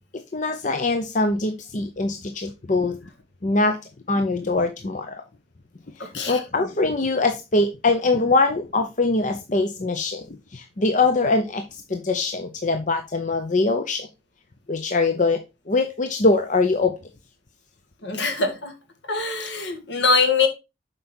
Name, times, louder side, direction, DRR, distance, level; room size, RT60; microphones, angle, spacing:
voice 1, 0.1-3.0 3.4-3.8 4.1-5.2 6.0-10.3 10.5-14.1 14.7-15.4 15.7-16.9, left 3 dB, 40° left, 0.7 m, -23 dB
voice 2, 6.0-6.4 18.0-18.7 19.1-20.5, left 4 dB, 70° left, 2.1 m, -23 dB
7.6 x 5.3 x 4.4 m
head